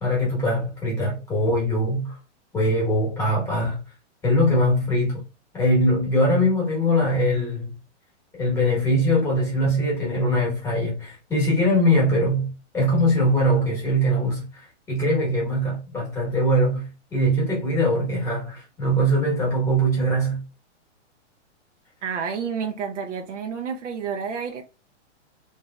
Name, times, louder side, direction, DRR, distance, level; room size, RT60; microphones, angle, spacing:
voice 1, 0.0-2.2 2.5-3.8 4.2-5.2 5.5-7.7 8.4-20.4, equal, 5° left, 1.0 m, -22 dB
voice 2, 22.0-24.6, right 6 dB, 80° right, 0.7 m, -30 dB
3.1 x 2.7 x 2.2 m
hypercardioid pair, 165°, 36 cm